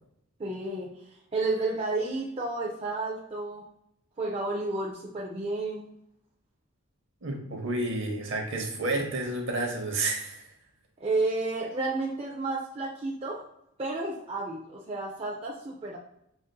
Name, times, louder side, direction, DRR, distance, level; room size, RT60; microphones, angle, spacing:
voice 1, 0.4-0.9 1.3-3.7 4.2-5.9 11.0-13.4 13.8-16.0, right 2 dB, 25° right, -2 dB, 0.4 m, -31 dB
voice 2, 7.2-10.5, right 2 dB, 55° right, 2 dB, 0.8 m, -30 dB
5.1 x 2.5 x 2.2 m, 0.78 s
head